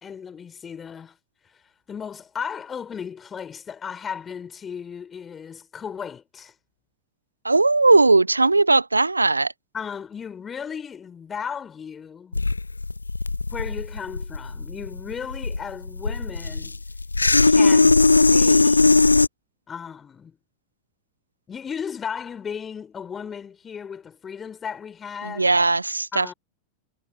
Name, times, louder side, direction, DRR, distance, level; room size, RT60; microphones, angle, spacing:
voice 1, 0.0-1.2 1.9-6.5 9.7-12.4 13.5-16.8 17.4-19.0 19.7-20.4 21.5-25.5 26.1-26.3, left 7 dB, 20° left, 3.9 m, -35 dB
voice 2, 7.4-9.5 25.2-26.3, right 3 dB, 80° right, 0.3 m, -18 dB
sound 1, 12.3-19.3, left 3 dB, 80° left, 0.5 m, -19 dB
figure-of-eight pair, 90°, 0 cm